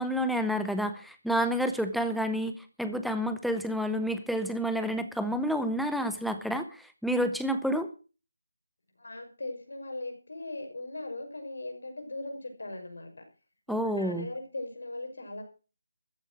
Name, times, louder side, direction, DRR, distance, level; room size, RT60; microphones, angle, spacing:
voice 1, 0.0-7.9 13.7-14.3, equal, ahead, 9 dB, 0.7 m, -29 dB
voice 2, 9.0-13.2 13.7-15.4, left 2 dB, 80° left, 4 dB, 5.7 m, -39 dB
14.0 x 10.5 x 6.1 m, 0.36 s
figure-of-eight pair, 175°, 0 cm